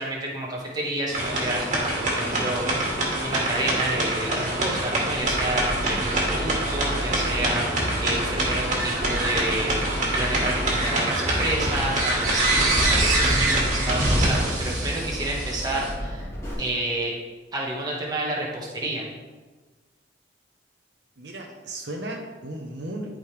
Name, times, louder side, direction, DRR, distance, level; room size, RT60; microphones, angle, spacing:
voice 1, 0.0-2.6 3.2-9.7 10.2-16.3 16.6-17.1 17.5-19.1, right 1 dB, 20° right, -3 dB, 1.6 m, -30 dB
sound 1, 1.1-15.9, right 1 dB, 40° right, 2.2 m, -25 dB
sound 2, 5.2-16.5, equal, 15° left, 2.4 m, -33 dB
voice 2, 21.2-23.2, right 1 dB, 70° right, 1 dB, 1.0 m, -35 dB
12.0 x 5.1 x 3.4 m, 1.3 s
head